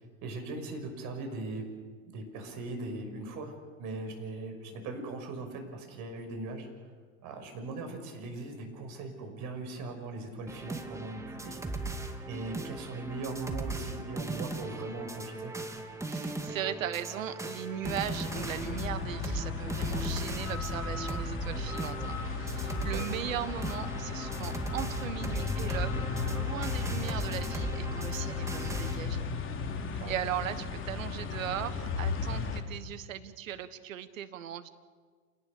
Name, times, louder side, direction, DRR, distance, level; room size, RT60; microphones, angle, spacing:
voice 1, 0.2-1.6 2.1-3.5 3.8-6.7 7.2-15.5 22.9-23.2 29.9-30.2, right 3 dB, 45° right, 5 dB, 6.1 m, -40 dB
sound 1, 10.5-29.0, right 2 dB, 5° right, 2.5 m, -38 dB
voice 2, 16.1-29.2 30.1-34.7, right 10 dB, 70° right, 12 dB, 1.6 m, -38 dB
sound 2, 17.8-32.6, left 5 dB, 30° left, 2.9 m, -35 dB
28.0 x 18.5 x 6.8 m, 1.5 s
hypercardioid pair, 90°, 41 cm